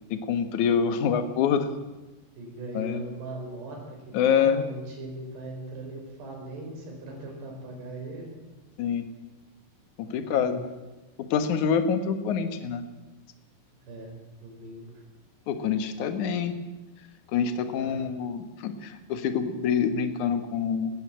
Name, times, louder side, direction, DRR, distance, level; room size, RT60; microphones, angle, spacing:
voice 1, 0.1-1.7 2.7-3.0 4.1-4.6 8.8-9.1 10.0-10.6 11.2-12.9 15.5-16.5 17.3-20.9, left 7 dB, 60° left, 8 dB, 2.3 m, -26 dB
voice 2, 2.4-4.0 4.3-8.4 10.0-10.6 13.9-14.1 14.4-14.9 17.7-18.0, right 2 dB, 70° right, 1 dB, 7.3 m, -39 dB
19.0 x 15.0 x 9.0 m, 1.1 s
omnidirectional pair, 5.0 m